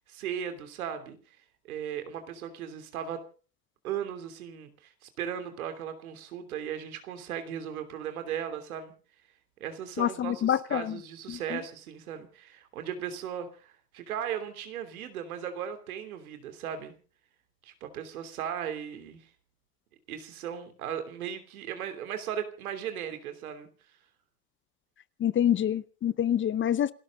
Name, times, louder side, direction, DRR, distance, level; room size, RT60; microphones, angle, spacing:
voice 1, 0.1-1.2 1.7-3.2 3.8-8.9 9.6-16.9 17.6-19.3 20.1-23.7, right 9 dB, 80° right, 8 dB, 3.1 m, -37 dB
voice 2, 10.0-11.0 11.3-11.4 25.2-26.9, left 10 dB, 30° left, 18 dB, 0.8 m, -26 dB
28.5 x 13.0 x 3.8 m, 0.39 s
hypercardioid pair, 85°, 43 cm